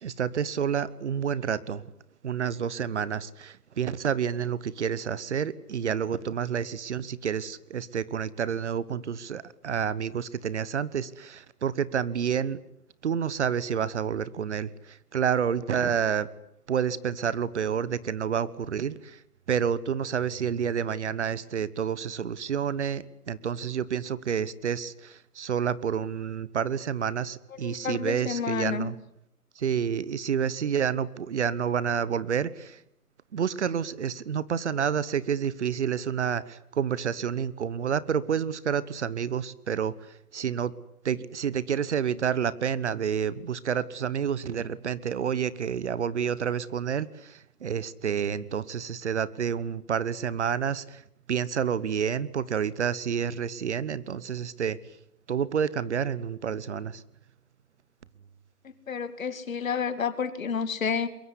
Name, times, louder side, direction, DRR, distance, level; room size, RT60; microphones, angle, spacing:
voice 1, 0.0-1.8 2.2-12.6 13.0-14.7 15.1-16.3 16.7-19.2 19.5-28.9 29.6-32.8 33.3-40.0 40.3-40.7 41.0-51.0 51.3-54.8 55.3-57.0, right 8 dB, 45° right, 18 dB, 1.2 m, -29 dB
voice 2, 27.6-28.9 58.9-61.1, left 6 dB, 60° left, 13 dB, 2.5 m, -30 dB
23.0 x 22.5 x 9.8 m, 0.76 s
hypercardioid pair, 150°, 46 cm